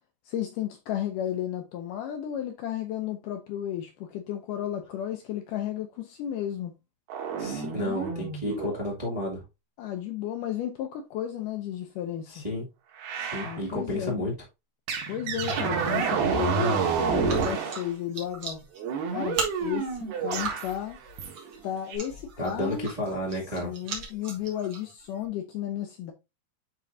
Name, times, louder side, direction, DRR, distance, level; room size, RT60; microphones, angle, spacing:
voice 1, 0.3-6.7 9.8-12.4 13.4-14.2 15.1-18.6 19.1-21.0 21.6-22.9 23.6-26.1, left 11 dB, 80° left, 1.9 m, -33 dB
sound 1, 7.1-8.8 13.0-13.6 14.9-17.9 18.8-20.7 21.2-21.5 21.9-22.0, right 6 dB, 85° right, 3.3 m, -29 dB
voice 2, 7.4-9.4 12.3-12.7 13.2-14.3 22.4-23.7, left 1 dB, 25° right, 0.9 m, -31 dB
sound 2, 17.3-25.3, right 4 dB, 45° right, 1.7 m, -39 dB
10.0 x 3.7 x 2.6 m
omnidirectional pair, 4.3 m